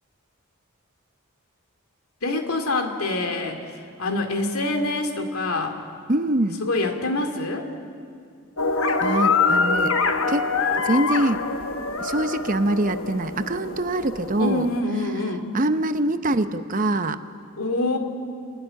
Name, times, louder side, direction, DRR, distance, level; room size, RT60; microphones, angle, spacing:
voice 1, 2.2-5.8 6.6-7.7 14.4-15.5 17.6-18.0, left 2 dB, 85° left, 4 dB, 2.4 m, -26 dB
voice 2, 6.1-6.6 9.0-10.0 10.3-10.5 10.8-11.4 12.0-14.7 15.5-17.2, right 1 dB, 40° right, 10 dB, 0.8 m, -24 dB
sound 1, 8.6-14.8, left 4 dB, 70° left, 1.1 m, -24 dB
27.5 x 13.0 x 10.0 m, 2.3 s
head